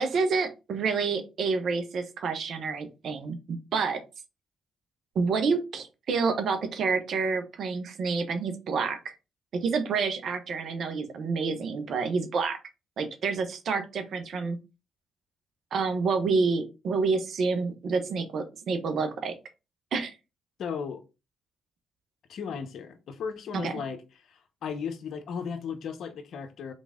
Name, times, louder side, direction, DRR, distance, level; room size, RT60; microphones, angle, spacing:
voice 1, 0.0-4.0 5.1-9.2 9.5-12.6 13.0-14.6 15.7-19.3 19.9-20.1 23.5-23.7, right 4 dB, 65° right, 1.1 m, -28 dB
voice 2, 20.6-21.0 22.3-24.0 24.3-26.7, left 6 dB, 65° left, 0.9 m, -35 dB
3.9 x 3.6 x 3.6 m
hypercardioid pair, 50°, 0 cm